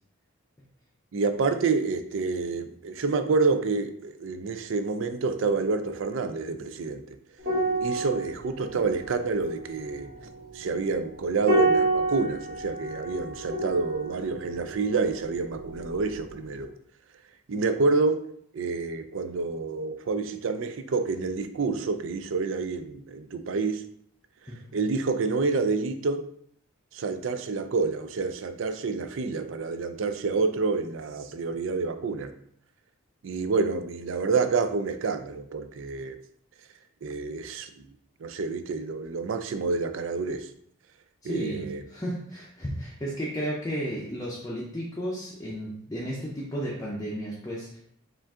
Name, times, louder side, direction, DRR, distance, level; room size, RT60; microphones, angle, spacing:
voice 1, 1.1-7.2 7.8-10.1 10.5-16.7 17.5-18.2 18.5-23.8 24.7-26.2 26.9-32.3 33.2-36.2 37.0-37.7 38.2-40.5 41.2-41.8, right 4 dB, 65° right, 9 dB, 0.4 m, -28 dB
sound 1, 7.4-16.1 16.4-16.6, right 2 dB, 45° right, 1.2 m, -30 dB
voice 2, 41.2-47.8, equal, 15° left, -6 dB, 0.6 m, -33 dB
4.9 x 2.5 x 3.6 m, 0.66 s
head